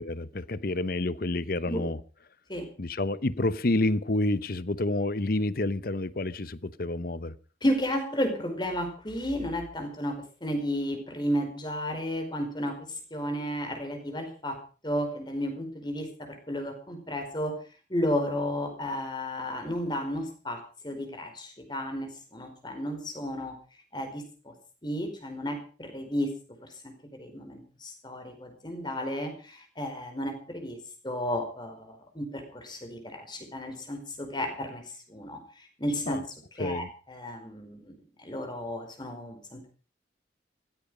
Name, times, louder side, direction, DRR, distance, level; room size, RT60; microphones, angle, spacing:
voice 1, 0.1-2.0 2.8-7.4 36.1-36.2 36.6-36.9, left 2 dB, 50° left, 0.9 m, -29 dB
voice 2, 7.6-10.1 10.4-14.6 14.8-17.5 17.9-23.5 23.9-24.5 24.8-26.3 26.6-26.9 27.2-30.8 31.0-36.2 36.6-39.7, equal, 25° left, 4.9 m, -33 dB
16.0 x 15.5 x 5.0 m
head